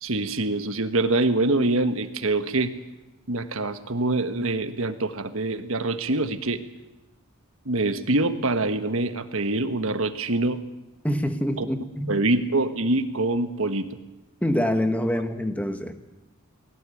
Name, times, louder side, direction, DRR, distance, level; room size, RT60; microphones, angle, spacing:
voice 1, 0.0-2.7 3.3-6.6 7.6-10.6 11.6-11.7 12.1-13.9, right 2 dB, 65° right, 9 dB, 1.4 m, -25 dB
voice 2, 11.0-12.2 14.4-15.9, equal, 5° left, 8 dB, 1.3 m, -25 dB
20.0 x 17.5 x 8.6 m, 1.0 s
head